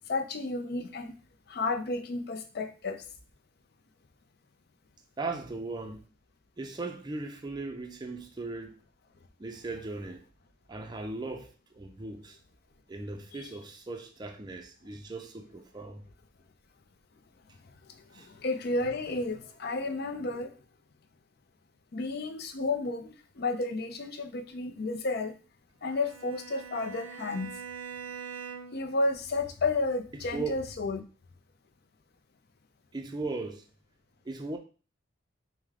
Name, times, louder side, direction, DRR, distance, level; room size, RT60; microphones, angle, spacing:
voice 1, 0.1-1.1 1.5-3.0 13.4-13.5 17.8-20.5 21.9-25.3 25.8-27.5 28.7-31.0, left 3 dB, 50° left, 0.5 m, -32 dB
voice 2, 5.2-6.0 6.6-8.8 9.4-10.2 10.7-12.4 12.9-16.0 18.1-18.3 30.1-30.6 32.9-33.7 34.2-34.6, right 3 dB, 20° right, 0.4 m, -38 dB
Bowed string instrument, 25.8-28.9, right 7 dB, 80° right, 0.5 m, -43 dB
4.8 x 2.1 x 3.5 m
head